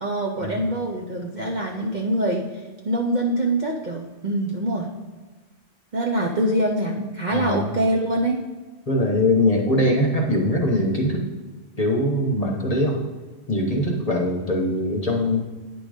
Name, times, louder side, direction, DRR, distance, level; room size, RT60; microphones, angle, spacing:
voice 1, 0.0-2.5 2.8-4.9 5.9-8.4, right 1 dB, 45° right, 0 dB, 0.7 m, -24 dB
voice 2, 7.3-7.7 8.9-11.2 11.8-13.0 13.5-15.4, left 1 dB, 30° left, 0 dB, 1.0 m, -22 dB
9.3 x 3.9 x 4.9 m, 1.3 s
omnidirectional pair, 1.3 m